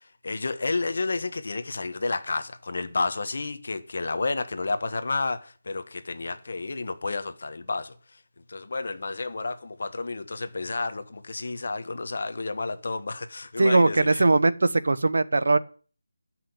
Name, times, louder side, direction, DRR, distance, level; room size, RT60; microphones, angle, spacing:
voice 1, 0.0-8.0 8.5-14.2, left 3 dB, 45° left, 1.4 m, -31 dB
voice 2, 13.6-15.6, right 2 dB, 60° right, 0.9 m, -20 dB
12.5 x 6.1 x 8.8 m
figure-of-eight pair, 175°, 0 cm